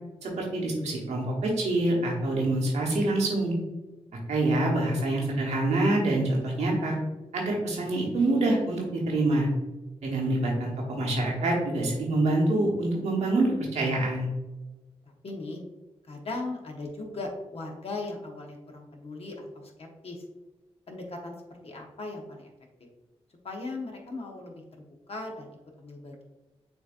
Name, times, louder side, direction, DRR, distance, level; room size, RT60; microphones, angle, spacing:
voice 1, 0.2-3.5 4.3-6.9 7.3-9.5 10.0-14.3, right 2 dB, 90° right, -2 dB, 1.2 m, -26 dB
voice 2, 15.0-15.6 16.0-20.2 20.9-22.5 23.4-25.5 25.8-26.2, left 2 dB, 60° left, 1 dB, 1.1 m, -38 dB
7.1 x 2.8 x 2.5 m, 1.1 s
cardioid pair, 45°, 11 cm